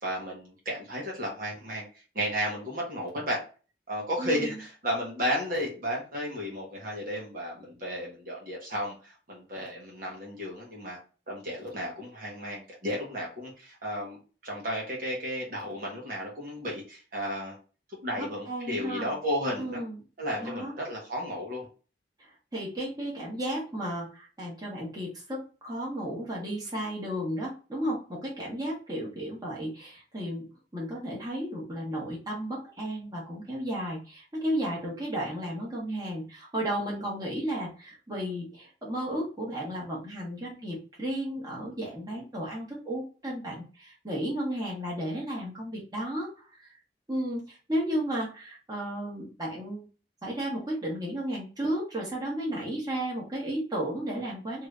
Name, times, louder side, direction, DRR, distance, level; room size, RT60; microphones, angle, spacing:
voice 1, 0.0-1.9 2.1-3.4 3.9-11.0 11.3-17.6 18.0-19.8 20.2-21.7, equal, 55° right, -2 dB, 1.2 m, -33 dB
voice 2, 4.2-4.5 18.2-19.1 19.6-20.0 20.4-20.7 22.2-30.4 30.7-46.8 47.1-49.9 50.2-54.7, right 1 dB, 20° right, -4 dB, 1.3 m, -33 dB
3.2 x 3.0 x 2.4 m, 0.35 s
head